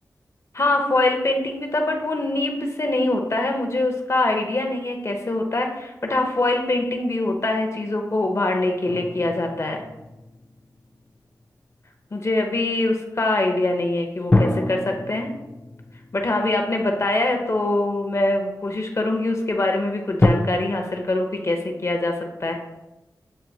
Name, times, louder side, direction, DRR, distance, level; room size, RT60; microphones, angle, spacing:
voice 1, 0.5-9.8 12.1-15.3 16.1-22.5, left 2 dB, 45° left, 3 dB, 0.7 m, -23 dB
sound 1, 8.8-11.4 14.3-17.7 18.4-18.5 20.2-20.3, left 2 dB, 20° left, 0.4 m, -26 dB
7.6 x 2.5 x 2.7 m, 0.97 s
wide cardioid pair, 70°, 7 cm